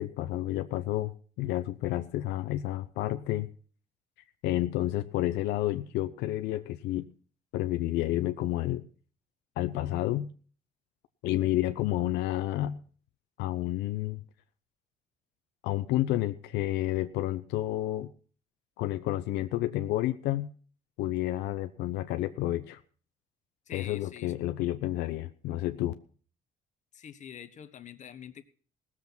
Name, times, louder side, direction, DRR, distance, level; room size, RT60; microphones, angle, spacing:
voice 1, 0.0-3.5 4.4-7.1 7.5-8.8 9.6-10.3 11.2-12.8 13.4-14.2 15.6-18.1 18.8-20.5 21.0-22.8 23.7-25.9, left 15 dB, 90° left, 9 dB, 0.7 m, -30 dB
voice 2, 23.7-24.3 24.7-24.8 26.9-28.4, left 9 dB, 45° left, 9 dB, 1.3 m, -45 dB
17.5 x 7.4 x 6.1 m, 0.42 s
cardioid pair, 110°, 17 cm